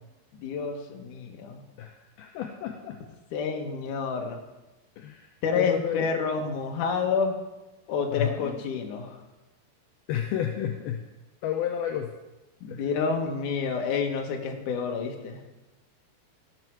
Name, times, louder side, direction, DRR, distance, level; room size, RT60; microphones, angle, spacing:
voice 1, 0.4-1.6 3.3-4.4 5.4-7.4 7.9-9.2 12.6-15.4, left 5 dB, 60° left, 2 dB, 2.3 m, -29 dB
voice 2, 1.8-3.0 5.0-6.0 8.1-8.6 10.1-11.0 11.4-12.1 12.7-12.9, left 10 dB, 80° left, 3 dB, 2.2 m, -31 dB
16.5 x 7.9 x 4.7 m, 1.1 s
omnidirectional pair, 5.1 m